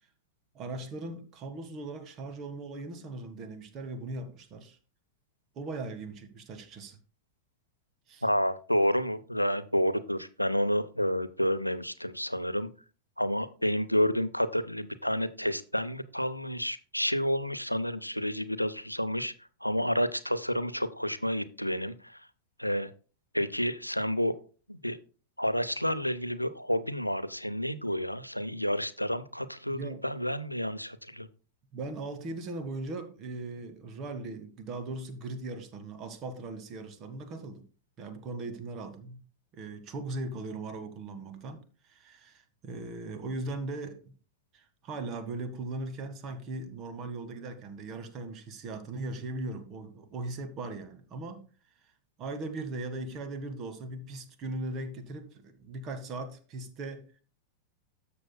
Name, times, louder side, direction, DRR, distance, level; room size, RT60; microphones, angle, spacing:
voice 1, 0.5-4.8 5.5-7.0 8.1-8.2 29.7-30.0 31.7-37.7 38.0-39.2 39.5-41.6 41.9-44.0 44.5-51.5 52.2-57.1, right 2 dB, 35° right, 9 dB, 1.6 m, -39 dB
voice 2, 8.2-12.7 13.2-19.3 19.6-22.2 22.6-22.9 23.3-24.3 24.7-25.0 25.4-31.3, equal, 90° left, 14 dB, 0.6 m, -30 dB
13.0 x 6.9 x 2.2 m, 0.36 s
figure-of-eight pair, 90°, 0 cm